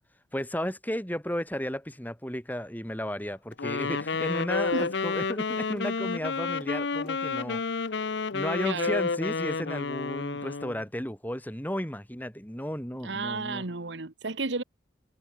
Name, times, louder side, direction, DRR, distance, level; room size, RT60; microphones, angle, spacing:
voice 1, 0.3-7.6 8.3-13.6, equal, 10° left, 6.7 m, -34 dB
Wind instrument woodwind instrument, 3.6-10.8, left 4 dB, 75° left, 0.8 m, -30 dB
voice 2, 8.6-9.0 13.0-14.6, right 3 dB, 80° right, 1.4 m, -32 dB
head